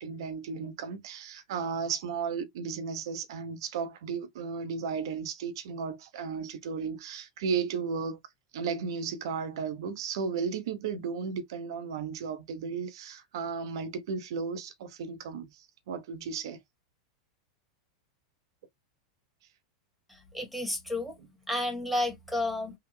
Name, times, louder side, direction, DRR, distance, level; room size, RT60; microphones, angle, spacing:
voice 1, 0.0-8.2 8.5-16.6, right 6 dB, 70° right, 0.8 m, -34 dB
voice 2, 20.3-21.1 21.5-22.7, left 1 dB, ahead, 1.5 m, -31 dB
3.5 x 2.3 x 3.2 m
hypercardioid pair, 100°, 3 cm